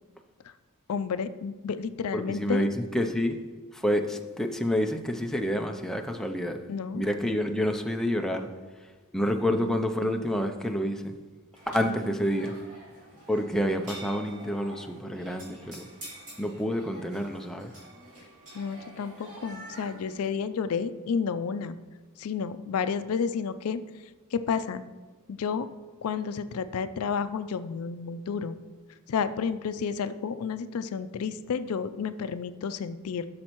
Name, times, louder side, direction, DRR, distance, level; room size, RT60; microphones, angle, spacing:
voice 1, 0.9-2.6 6.7-7.0 9.5-9.7 18.5-21.8 22.2-23.8 24.3-24.8 25.3-25.7 26.0-28.6 29.1-33.3, left 6 dB, 75° left, 12 dB, 0.4 m, -31 dB
voice 2, 2.1-3.4 3.7-6.6 6.9-8.5 9.1-11.1 11.7-12.5 13.3-15.8 16.4-17.7, equal, ahead, 4 dB, 0.5 m, -28 dB
sound 1, 11.5-20.3, right 1 dB, 35° right, 3.0 m, -47 dB
12.5 x 6.4 x 3.0 m, 1.3 s
head